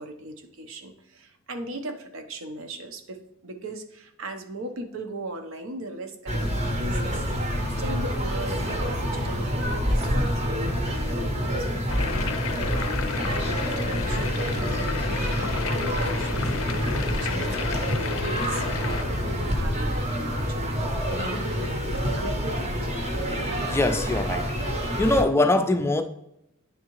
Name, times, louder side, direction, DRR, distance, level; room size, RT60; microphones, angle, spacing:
voice 1, 0.0-7.2 7.8-17.5 17.8-20.7 21.0-21.2 22.1-23.0, right 1 dB, 75° right, 0.7 m, -38 dB
sound 1, 6.3-25.2, equal, 30° right, 0.8 m, -27 dB
sound 2, 11.9-19.0, left 5 dB, 80° left, 0.5 m, -32 dB
voice 2, 23.7-24.5 25.0-26.0, left 2 dB, 10° left, 0.3 m, -22 dB
9.3 x 3.6 x 3.0 m
head